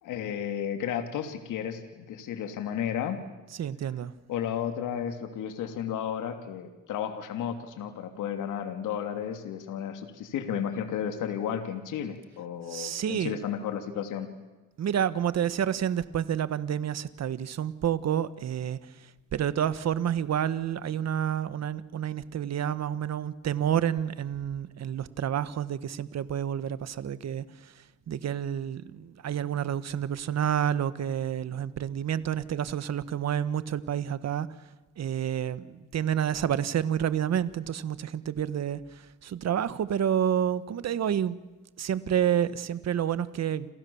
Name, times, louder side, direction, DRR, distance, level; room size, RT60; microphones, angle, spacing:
voice 1, 0.0-3.2 4.3-14.3, left 9 dB, 85° left, 3.1 m, -33 dB
voice 2, 3.6-4.1 12.7-13.4 14.8-34.6 35.0-41.4 41.8-43.7, right 9 dB, 60° right, 1.5 m, -29 dB
30.0 x 27.5 x 7.3 m
cardioid pair, 90°, 30 cm